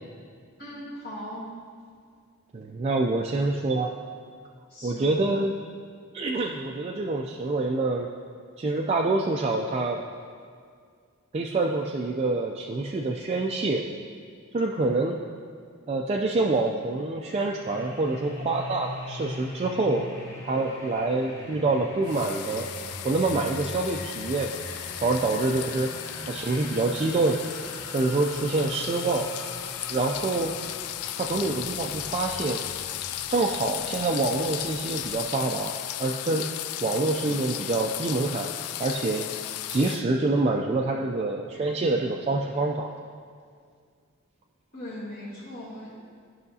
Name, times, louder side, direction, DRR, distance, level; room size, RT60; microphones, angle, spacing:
voice 1, 0.6-1.5 4.7-5.2 44.7-45.9, left 1 dB, 50° left, -9 dB, 1.4 m, -39 dB
voice 2, 2.5-4.0 4.8-5.5 6.1-8.1 8.6-10.0 11.3-13.8 14.5-15.2 15.9-20.0 20.4-22.7 23.0-24.5 25.0-25.9 26.3-27.4 27.9-29.3 29.9-30.5 31.2-32.6 33.3-35.7 36.0-36.5 36.8-38.5 38.8-39.3 39.7-42.9, right 2 dB, 30° right, 0 dB, 0.3 m, -26 dB
sound 1, 17.3-35.2, left 1 dB, 15° left, 0.8 m, -42 dB
sound 2, 22.1-40.0, left 12 dB, 90° left, 0.3 m, -35 dB
12.0 x 5.7 x 2.7 m, 2.1 s
head